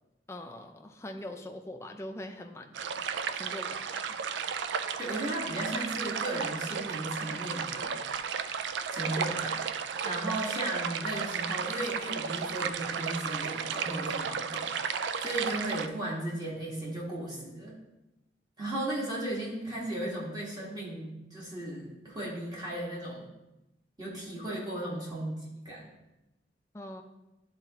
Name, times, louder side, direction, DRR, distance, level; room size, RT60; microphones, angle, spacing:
voice 1, 0.3-2.9 3.3-4.1 26.7-27.0, left 1 dB, 15° left, 4 dB, 0.4 m, -42 dB
sound 1, 2.7-15.9, right 6 dB, 80° right, 0.4 m, -34 dB
voice 2, 5.0-7.9 8.9-9.6 10.0-17.8 18.6-23.3 24.0-25.9, right 1 dB, 20° right, -6 dB, 1.5 m, -36 dB
11.0 x 4.0 x 2.8 m, 0.97 s
head